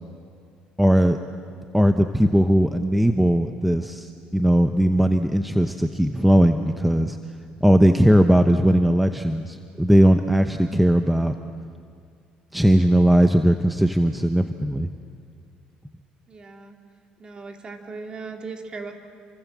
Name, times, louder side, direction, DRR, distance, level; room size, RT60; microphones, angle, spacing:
voice 1, 0.8-1.2 1.7-7.2 7.6-11.3 12.5-14.9, equal, ahead, 7 dB, 1.0 m, -18 dB
voice 2, 16.3-16.8 17.2-18.9, right 4 dB, 30° right, 4 dB, 3.0 m, -37 dB
28.5 x 24.5 x 7.5 m, 2.3 s
cardioid pair, 110°, 3 cm